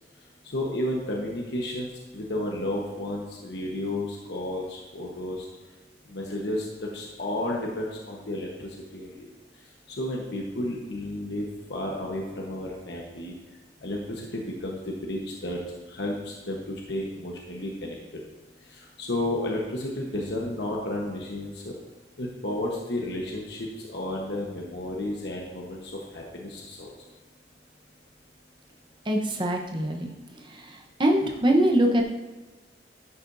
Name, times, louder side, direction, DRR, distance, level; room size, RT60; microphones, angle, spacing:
voice 1, 0.5-5.5 6.1-9.3 9.9-13.3 13.8-15.6 15.9-18.2 18.6-21.7 22.2-26.9, left 1 dB, 65° left, -1 dB, 1.2 m, -32 dB
voice 2, 29.1-30.1 31.0-32.0, right 1 dB, 25° right, 1 dB, 1.0 m, -22 dB
11.5 x 8.5 x 2.7 m, 1.3 s
head